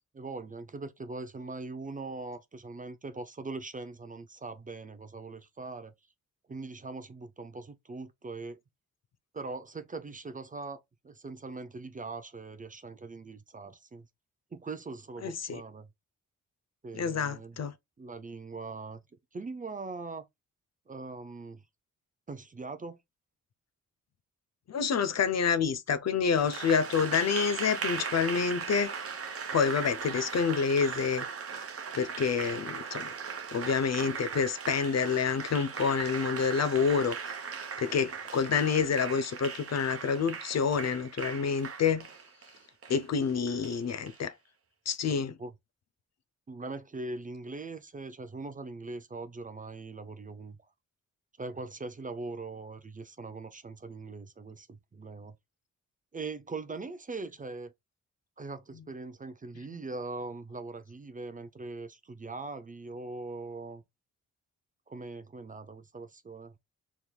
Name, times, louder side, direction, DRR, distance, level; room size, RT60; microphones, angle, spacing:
voice 1, 0.1-5.9 6.5-8.6 9.3-14.1 14.5-15.9 16.8-17.6 18.0-19.0 19.3-20.2 20.9-21.6 22.3-23.0 45.4-45.5 46.5-50.6 51.4-55.3 56.1-57.7 58.4-63.8 64.9-66.5, right 3 dB, 25° right, 0.5 m, -41 dB
voice 2, 15.2-15.6 16.9-17.7 24.7-28.9 29.5-31.2 31.9-33.1 33.5-37.2 37.8-42.1 42.9-44.3 44.9-45.4, left 6 dB, 55° left, 0.6 m, -28 dB
Applause, 26.4-44.2, right 6 dB, 45° right, 0.8 m, -39 dB
4.5 x 3.5 x 2.3 m
cardioid pair, 95°, 32 cm